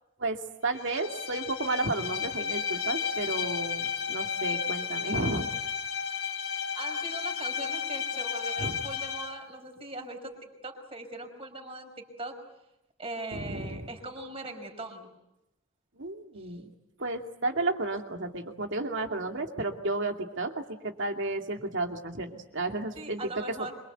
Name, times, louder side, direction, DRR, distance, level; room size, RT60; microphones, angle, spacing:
voice 1, 0.2-5.5 8.6-8.8 13.3-13.9 16.0-16.7 17.0-23.2, right 2 dB, 60° right, 4 dB, 2.5 m, -32 dB
Bowed string instrument, 0.7-9.4, left 7 dB, 80° left, 3.7 m, -33 dB
voice 2, 6.7-12.4 13.0-15.1 16.4-16.5 23.0-23.7, right 2 dB, 25° right, 4 dB, 5.3 m, -40 dB
27.0 x 24.0 x 8.1 m, 0.91 s
head